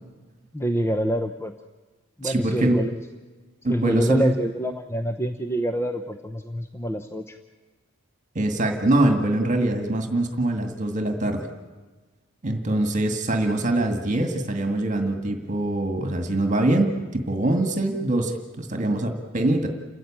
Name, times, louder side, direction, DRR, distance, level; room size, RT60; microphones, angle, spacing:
voice 1, 0.5-1.5 2.2-3.0 3.7-7.4, right 1 dB, 10° left, 7 dB, 0.7 m, -27 dB
voice 2, 2.2-2.8 3.6-4.3 8.4-11.5 12.4-19.7, right 1 dB, 35° right, 5 dB, 2.0 m, -23 dB
29.0 x 14.0 x 8.9 m, 1.3 s
head